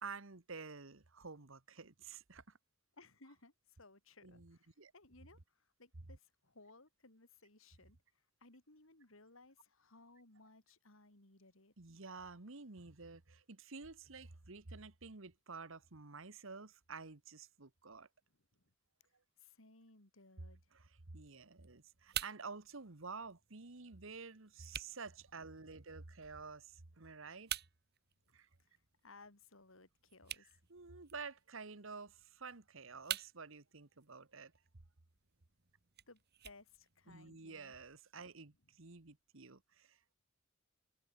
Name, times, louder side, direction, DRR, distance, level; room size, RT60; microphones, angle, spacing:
voice 1, 0.0-2.6 4.2-4.9 11.8-18.1 20.7-27.5 28.3-28.5 30.7-34.5 37.1-40.1, right 4 dB, 65° right, 1.5 m, -51 dB
voice 2, 3.0-11.7 18.5-18.7 19.4-20.7 28.3-30.6 36.1-37.7, left 3 dB, 70° left, 3.7 m, -62 dB
sound 1, 21.2-37.3, right 11 dB, 50° right, 2.4 m, -50 dB
head